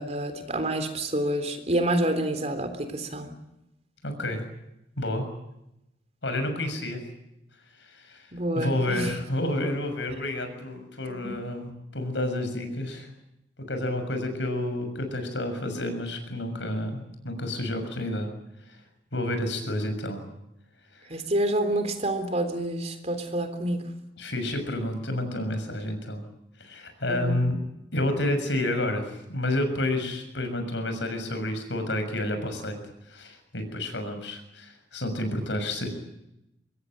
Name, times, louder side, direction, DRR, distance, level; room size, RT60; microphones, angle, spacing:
voice 1, 0.0-3.3 8.3-9.1 11.0-11.4 21.1-23.9 27.1-27.5, right 1 dB, 35° right, 8 dB, 3.6 m, -28 dB
voice 2, 4.0-4.4 5.0-5.3 6.2-7.0 7.8-8.3 8.6-13.1 13.7-18.3 18.7-18.8 19.1-20.2 24.2-26.2 26.6-27.6 27.9-32.8 33.1-35.9, left 1 dB, 80° left, 7 dB, 6.8 m, -30 dB
24.0 x 21.0 x 9.0 m, 0.85 s
head